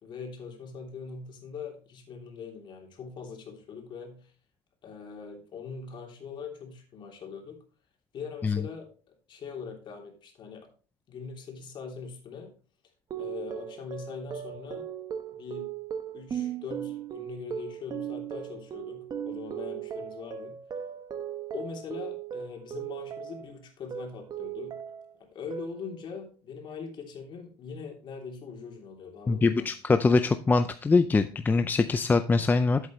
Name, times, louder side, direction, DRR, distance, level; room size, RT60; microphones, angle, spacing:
voice 1, 0.0-4.3 4.8-7.6 8.1-8.9 9.3-10.7 11.1-12.5 13.1-14.9 15.4-15.6 16.1-20.6 21.5-24.7 25.2-29.7, left 5 dB, 45° left, 1 dB, 3.1 m, -41 dB
sound 1, 13.1-23.5 23.9-25.1 25.5-26.0, right 9 dB, 35° right, 1.2 m, -37 dB
voice 2, 29.3-32.8, left 3 dB, 15° left, 10 dB, 0.4 m, -23 dB
11.0 x 8.1 x 3.1 m, 0.38 s
cardioid pair, 115°, 11 cm